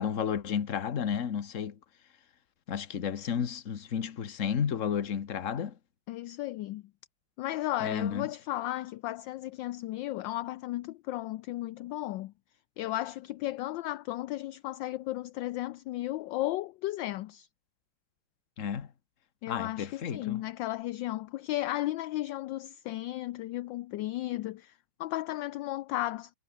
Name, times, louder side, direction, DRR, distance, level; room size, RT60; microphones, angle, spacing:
voice 1, 0.0-1.8 2.7-5.8 7.8-8.3 18.6-18.9 19.5-20.4, left 7 dB, 40° left, 1.5 m, -32 dB
voice 2, 6.1-6.8 7.4-12.3 12.8-17.5 19.4-26.3, left 16 dB, 75° left, 1.2 m, -34 dB
omnidirectional pair, 2.3 m